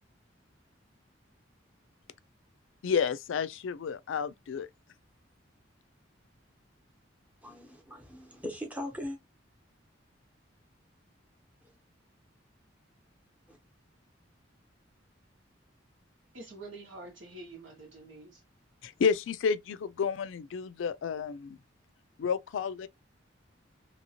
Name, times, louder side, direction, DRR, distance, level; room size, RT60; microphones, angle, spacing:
voice 1, 2.8-4.7 18.8-21.6 22.2-22.9, left 6 dB, 80° left, 0.4 m, -30 dB
voice 2, 7.4-9.2 13.5-13.6, left 1 dB, 10° right, 0.8 m, -40 dB
voice 3, 16.3-18.4, right 2 dB, 80° right, 1.4 m, -47 dB
2.8 x 2.8 x 2.8 m
head